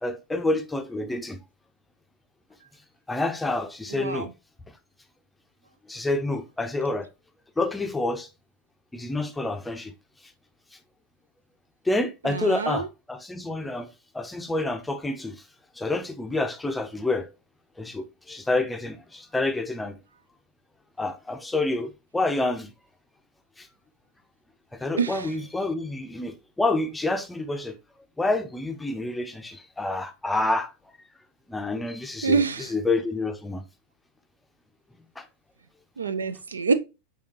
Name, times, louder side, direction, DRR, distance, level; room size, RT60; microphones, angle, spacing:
voice 1, 0.0-1.4 3.1-4.3 5.9-7.1 7.6-8.3 8.9-9.9 11.9-13.9 14.1-15.4 15.8-17.3 17.8-20.0 21.0-22.7 23.6-23.7 24.7-27.7 28.2-30.7 31.5-32.4 32.7-33.6 35.2-35.3, left 2 dB, 5° left, 0.5 m, -28 dB
voice 2, 3.9-4.3 12.2-12.9 25.0-25.3 32.2-32.7 36.0-36.7, right 5 dB, 70° right, 0.3 m, -26 dB
4.9 x 3.4 x 2.8 m
figure-of-eight pair, 90°, 0 cm